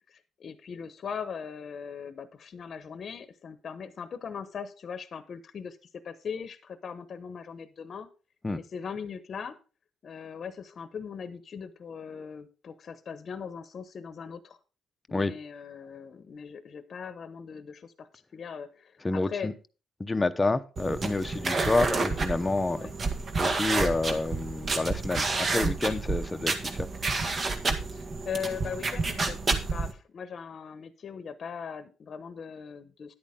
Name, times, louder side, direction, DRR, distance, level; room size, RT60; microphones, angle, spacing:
voice 1, 0.1-5.8 6.0-8.1 8.5-9.6 10.0-14.6 15.1-19.5 21.5-21.7 22.7-23.0 27.9-29.4 29.7-33.1, left 6 dB, 50° left, 11 dB, 1.0 m, -40 dB
voice 2, 19.0-19.5 20.0-22.8 23.4-26.9, left 2 dB, 20° left, 9 dB, 0.8 m, -28 dB
sound 1, 20.8-29.9, right 3 dB, 40° right, 1.7 m, -30 dB
10.5 x 8.5 x 3.7 m, 0.35 s
cardioid pair, 90°, 0 cm